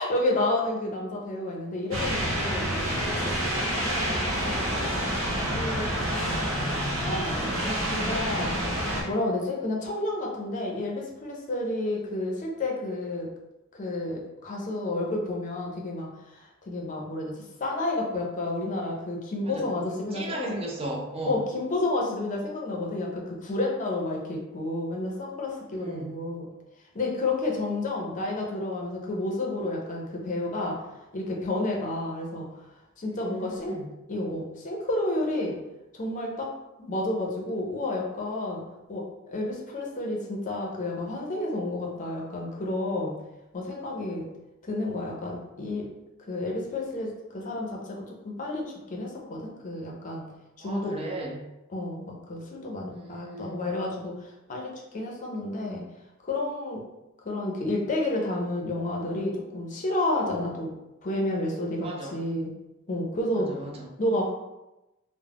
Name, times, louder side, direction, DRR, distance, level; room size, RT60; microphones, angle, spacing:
voice 1, 0.0-3.3 3.8-5.0 5.5-6.6 7.0-8.5 8.9-13.3 13.7-16.1 16.4-17.3 17.6-20.5 21.3-26.5 26.9-30.8 31.1-32.5 33.0-33.8 34.1-35.6 35.9-36.5 36.8-38.6 38.9-43.1 43.5-44.2 44.7-45.8 46.3-50.2 50.6-50.9 51.7-55.8 56.2-56.8 57.2-60.7 61.0-62.5 62.9-63.5 64.0-64.3, left 2 dB, 40° left, -1 dB, 0.5 m, -30 dB
sound 1, 1.9-9.0, equal, 70° right, 0.7 m, -28 dB
voice 2, 20.1-21.4 25.7-26.1 33.1-33.9 50.6-51.5 52.9-53.6 61.8-62.1 63.4-63.8, right 1 dB, 30° right, -1 dB, 0.4 m, -36 dB
2.3 x 2.0 x 3.4 m, 0.97 s
head